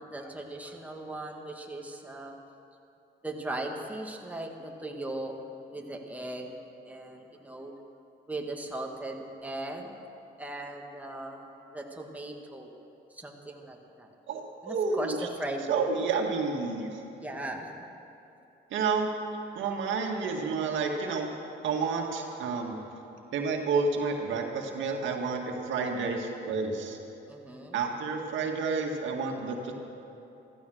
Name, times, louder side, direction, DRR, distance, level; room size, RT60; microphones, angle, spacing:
voice 1, 0.0-2.3 3.2-5.4 5.7-6.5 6.9-7.7 8.3-10.0 10.4-11.4 11.7-12.8 13.1-14.1 14.6-15.8 17.1-17.9 27.3-27.8, right 2 dB, 10° right, 1 dB, 2.0 m, -38 dB
voice 2, 14.3-15.2 15.7-17.0 18.7-19.1 19.6-21.3 21.6-22.8 23.3-27.0 27.7-29.7, right 4 dB, 75° right, 2 dB, 2.0 m, -30 dB
15.0 x 14.5 x 6.4 m, 2.9 s
cardioid pair, 80°, 20 cm